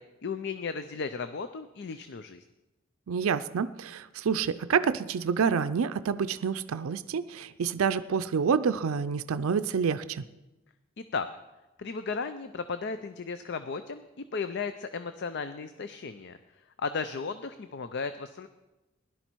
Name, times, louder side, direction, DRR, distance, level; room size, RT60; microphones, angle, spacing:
voice 1, 0.2-2.4 11.0-11.3 11.8-14.0 14.3-16.4 16.8-18.5, left 5 dB, 55° left, 10 dB, 0.5 m, -35 dB
voice 2, 3.1-10.2, right 6 dB, 90° right, 13 dB, 0.4 m, -28 dB
16.5 x 11.5 x 4.6 m, 1.0 s
head